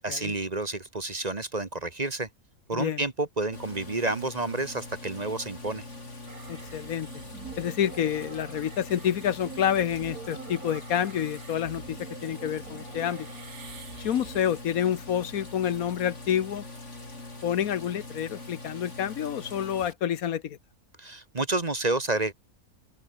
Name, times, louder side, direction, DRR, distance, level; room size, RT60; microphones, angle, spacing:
voice 1, 0.0-2.3 2.7-5.8 21.0-22.3, right 2 dB, 30° right, 1.4 m, -30 dB
sound 1, 3.5-19.9, left 2 dB, 50° left, 5.0 m, -43 dB
sound 2, 6.3-14.6, right 7 dB, 80° right, 2.0 m, -46 dB
voice 2, 6.5-7.1 7.6-13.3 14.0-16.6 17.4-20.6, left 9 dB, 75° left, 1.4 m, -28 dB
open air
omnidirectional pair, 1.5 m